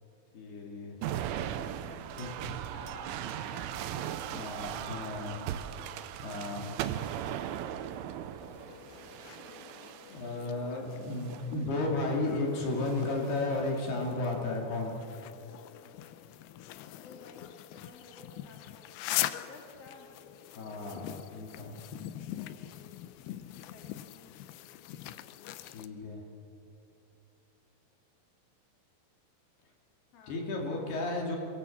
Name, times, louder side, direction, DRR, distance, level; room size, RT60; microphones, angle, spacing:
voice 1, 0.3-0.9 2.2-2.3 4.2-5.4 6.2-6.8 10.1-14.9 20.5-21.8 25.6-26.2 30.3-31.4, left 2 dB, 60° left, 0 dB, 4.4 m, -34 dB
sound 1, 1.0-10.4 11.1-11.6 12.7-13.4, right 11 dB, 85° right, 3.2 m, -38 dB
voice 2, 2.1-5.9 10.0-11.3 17.0-18.9 19.2-20.1 22.1-22.6 23.3-24.3 30.1-31.3, left 3 dB, 35° left, 1 dB, 3.2 m, -54 dB
sound 2, 8.4-25.9, left 14 dB, 85° left, 2.2 m, -42 dB
22.5 x 22.5 x 7.2 m, 2.8 s
omnidirectional pair, 5.4 m